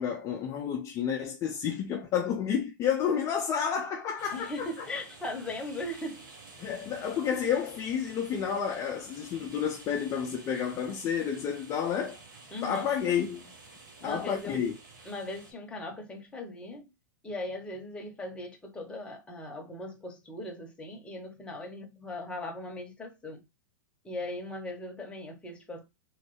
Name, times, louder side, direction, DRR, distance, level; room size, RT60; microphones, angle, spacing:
voice 1, 0.0-4.8 6.6-12.2 12.6-13.4 14.0-14.8, left 8 dB, 30° left, 0.5 m, -30 dB
sound 1, 4.2-15.5, right 3 dB, 85° right, 1.1 m, -51 dB
voice 2, 4.3-6.3 6.6-6.7 12.5-12.9 14.0-14.6 15.1-16.9 17.2-23.4 24.0-25.9, left 1 dB, 10° left, 0.9 m, -39 dB
3.1 x 2.1 x 3.1 m
hypercardioid pair, 125°, 10 cm